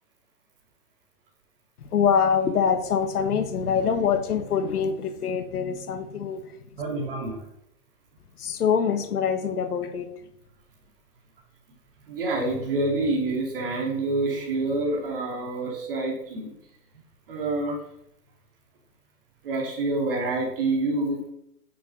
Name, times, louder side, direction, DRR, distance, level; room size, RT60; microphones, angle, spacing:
voice 1, 1.8-6.6 8.4-10.1, left 7 dB, 65° left, 8 dB, 1.6 m, -24 dB
voice 2, 6.8-7.4 12.1-16.5 17.3-17.8 19.4-21.3, right 2 dB, 35° right, 0 dB, 3.3 m, -27 dB
11.0 x 7.0 x 6.2 m, 0.80 s
hypercardioid pair, 175°, 47 cm